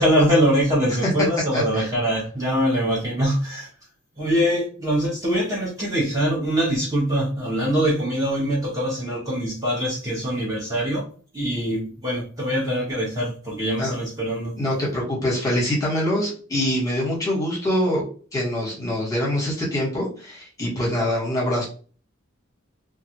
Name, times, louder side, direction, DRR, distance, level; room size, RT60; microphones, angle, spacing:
voice 1, 0.0-3.7 4.2-11.0 11.3-14.5, equal, 20° right, -6 dB, 0.8 m, -23 dB
voice 2, 1.5-1.9 13.8-13.9 14.6-18.1 18.3-21.7, left 1 dB, 15° left, -5 dB, 1.1 m, -24 dB
2.4 x 2.4 x 2.7 m, 0.40 s
head